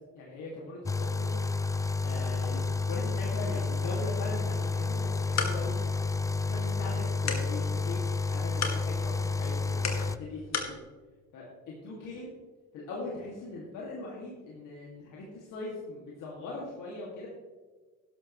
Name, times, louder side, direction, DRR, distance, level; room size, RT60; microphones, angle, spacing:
voice 1, 0.1-1.4 2.0-5.8 6.4-8.0 8.3-10.7 11.3-11.5 11.8-12.3 12.7-17.3, left 2 dB, 85° left, -4 dB, 2.3 m, -40 dB
sound 1, 0.9-10.2, left 3 dB, 10° left, 0.3 m, -30 dB
sound 2, 5.0-10.8, left 5 dB, 60° left, 1.9 m, -38 dB
12.5 x 11.0 x 3.1 m, 1.3 s
cardioid pair, 90°, 30 cm